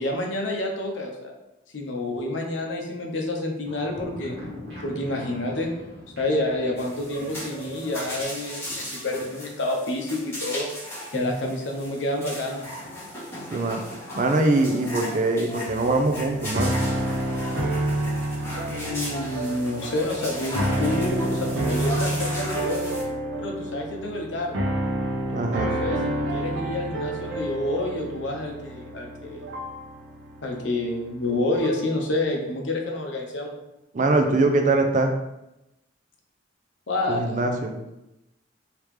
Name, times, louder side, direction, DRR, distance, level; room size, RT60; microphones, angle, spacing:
voice 1, 0.0-1.3 1.7-4.4 4.8-5.7 6.2-10.7 11.1-12.7 18.7-23.0 23.4-24.6 25.6-29.5 30.4-33.6 36.9-37.4, left 2 dB, 70° left, 2 dB, 0.7 m, -28 dB
sound 1, 3.6-8.8, equal, 55° right, 1.3 m, -42 dB
sound 2, 6.8-23.0, equal, 10° left, 1.4 m, -36 dB
voice 2, 14.1-16.8 25.3-25.7 33.9-35.2 37.1-37.8, right 2 dB, 40° right, 4 dB, 0.4 m, -23 dB
sound 3, 15.7-31.9, right 1 dB, 85° right, 0.8 m, -29 dB
3.5 x 2.9 x 3.2 m, 0.91 s
head